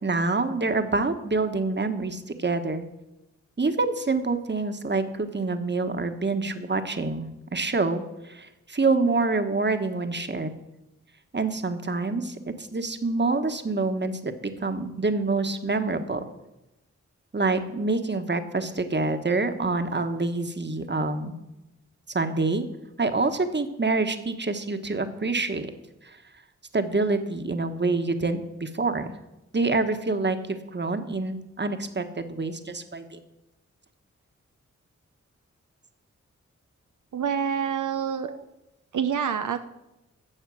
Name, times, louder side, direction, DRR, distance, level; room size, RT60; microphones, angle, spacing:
voice 1, 0.0-2.8 3.6-10.5 11.3-16.2 17.3-21.3 22.1-22.7 23.0-25.7 26.7-29.1 29.5-33.2 38.2-38.4, right 3 dB, 35° right, 8 dB, 1.4 m, -26 dB
voice 2, 37.1-38.3 38.9-39.6, right 7 dB, 85° right, 8 dB, 0.7 m, -27 dB
14.5 x 7.2 x 6.4 m, 0.95 s
cardioid pair, 45°, 30 cm